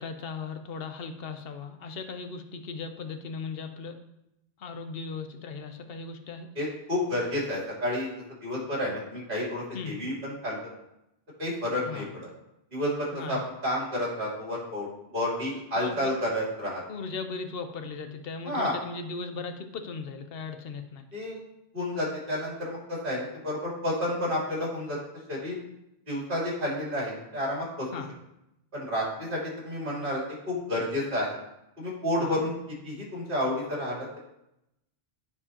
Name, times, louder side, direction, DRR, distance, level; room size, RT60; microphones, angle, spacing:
voice 1, 0.0-4.0 4.6-6.5 9.7-10.0 11.8-12.1 13.1-13.4 15.8-16.1 16.9-21.0 27.9-28.1 32.2-32.4, left 4 dB, 65° left, 7 dB, 1.0 m, -37 dB
voice 2, 6.5-8.1 8.4-10.7 11.4-12.3 12.7-14.9 15.1-16.8 18.4-18.7 21.1-21.4 21.7-25.0 25.3-25.5 26.1-27.9 28.7-31.3 31.8-32.5 32.8-34.2, left 1 dB, 55° right, -6 dB, 3.3 m, -30 dB
14.5 x 4.9 x 2.9 m, 0.85 s
omnidirectional pair, 1.1 m